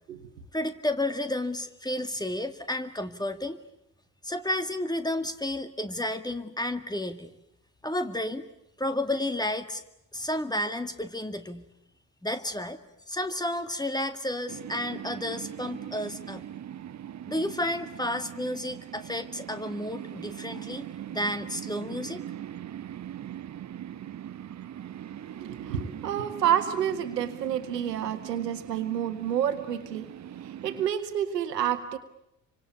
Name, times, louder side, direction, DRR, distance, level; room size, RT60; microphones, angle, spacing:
voice 1, 0.5-3.6 4.2-7.3 7.8-8.4 8.8-9.8 10.1-11.7 12.2-12.8 13.1-16.5 17.3-20.8 21.1-22.2, left 1 dB, 10° left, 10 dB, 2.0 m, -31 dB
sound 1, 14.5-30.9, right 10 dB, 35° right, 1.0 m, -41 dB
voice 2, 25.4-30.1 30.4-32.0, right 9 dB, 80° right, 10 dB, 1.7 m, -29 dB
27.0 x 25.0 x 8.3 m, 0.82 s
figure-of-eight pair, 50°, 49 cm